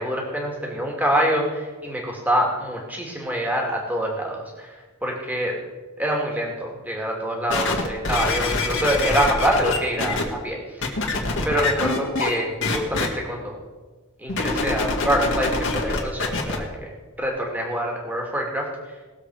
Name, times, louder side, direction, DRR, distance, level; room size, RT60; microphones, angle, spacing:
voice 1, 0.0-5.6 6.0-10.9 11.4-13.6 14.2-19.0, equal, 10° right, -1 dB, 2.4 m, -25 dB
sound 1, 7.5-10.2 10.8-12.3 12.6-13.1 14.3-16.6 17.2-17.3, left 3 dB, 55° left, 2.0 m, -25 dB
19.5 x 7.6 x 4.9 m, 1.3 s
head